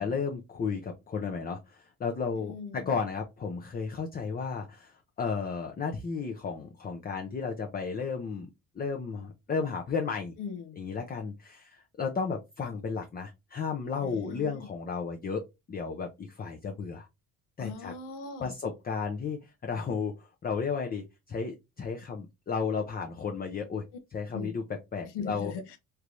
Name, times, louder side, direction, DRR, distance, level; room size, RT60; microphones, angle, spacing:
voice 1, 0.0-8.5 8.8-10.3 10.8-15.4 15.7-17.1 17.6-17.9 18.4-23.8 24.1-24.6 24.9-25.5, left 5 dB, 25° left, 0.5 m, -33 dB
voice 2, 2.3-3.0 10.4-10.8 14.0-14.7 17.6-18.5 24.3-24.6 25.1-25.8, left 5 dB, 85° left, 0.8 m, -40 dB
3.3 x 3.0 x 2.5 m
cardioid pair, 120°, 40 cm